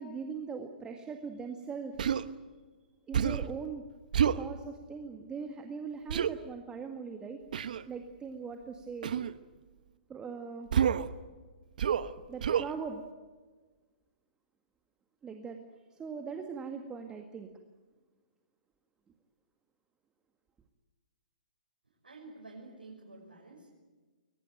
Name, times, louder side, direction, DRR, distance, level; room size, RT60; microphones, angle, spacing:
voice 1, 0.0-2.0 3.1-3.8 4.3-7.4 7.9-9.1 10.1-10.7 12.3-13.0 15.2-15.6 15.9-17.5, right 5 dB, 15° right, 5 dB, 1.8 m, -40 dB
Human voice, 2.0-2.3 3.1-3.5 4.1-4.4 6.1-6.3 7.5-7.8 9.0-9.3 10.7-11.1 11.8-12.1 12.4-12.7, right 8 dB, 65° right, 1.1 m, -28 dB
voice 2, 22.0-23.7, right 2 dB, 85° right, -2 dB, 6.2 m, -50 dB
22.0 x 20.5 x 9.1 m, 1.3 s
hypercardioid pair, 125°, 5 cm